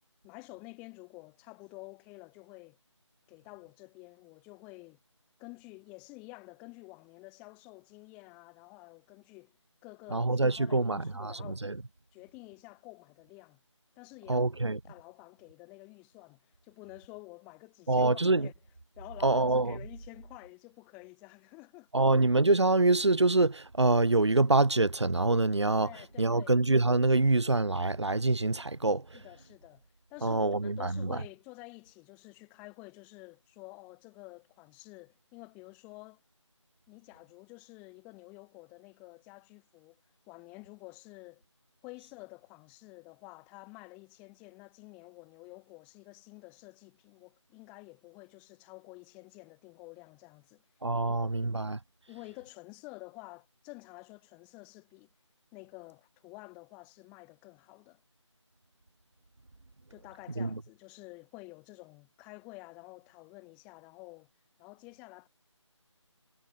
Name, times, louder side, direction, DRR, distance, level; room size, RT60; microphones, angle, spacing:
voice 1, 0.2-2.8 3.3-5.0 5.4-9.6 9.8-11.6 12.1-13.6 14.0-14.4 14.8-18.5 19.0-22.1 25.8-26.6 29.1-36.2 36.9-40.0 40.3-41.4 41.8-50.6 51.0-51.6 52.1-55.1 55.5-58.0 59.9-64.3 64.6-65.3, left 28 dB, 10° left, 4.3 m, -50 dB
voice 2, 10.1-11.8 14.3-14.8 17.9-18.5 19.2-19.8 21.9-25.9 26.2-29.2 30.2-31.2 50.8-51.8 60.4-60.6, right 2 dB, 60° right, 6.3 m, -25 dB
figure-of-eight pair, 165°, 16 cm